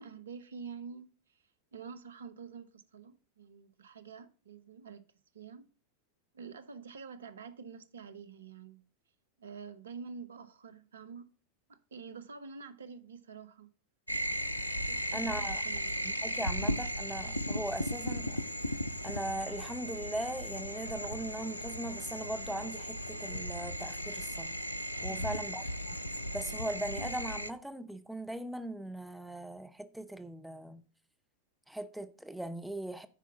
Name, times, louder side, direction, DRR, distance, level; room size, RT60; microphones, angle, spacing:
voice 1, 0.0-1.4 1.7-5.0 5.3-5.7 6.3-8.8 9.4-11.3 11.7-13.7 14.8-16.1 16.4-16.5 25.1-25.4, right 5 dB, 65° right, 0.8 m, -47 dB
sound 1, 14.1-27.5, equal, 85° left, 0.5 m, -36 dB
voice 2, 15.1-15.6 16.0-18.4 19.0-24.5 25.0-26.0 26.3-30.8 31.7-33.1, right 1 dB, ahead, 0.6 m, -39 dB
9.4 x 4.7 x 5.8 m
figure-of-eight pair, 90°, 0 cm